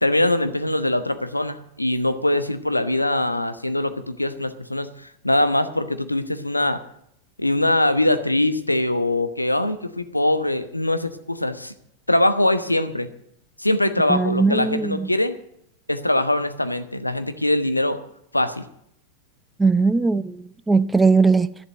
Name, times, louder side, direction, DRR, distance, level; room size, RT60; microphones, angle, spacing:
voice 1, 0.0-6.8 7.4-11.7 12.1-13.1 13.6-15.3 15.9-18.0 18.3-18.7, left 1 dB, 85° left, 1.0 m, -22 dB
voice 2, 14.1-15.1 19.6-21.5, right 4 dB, 10° right, 0.5 m, -19 dB
12.0 x 11.0 x 7.8 m
figure-of-eight pair, 90°, 0 cm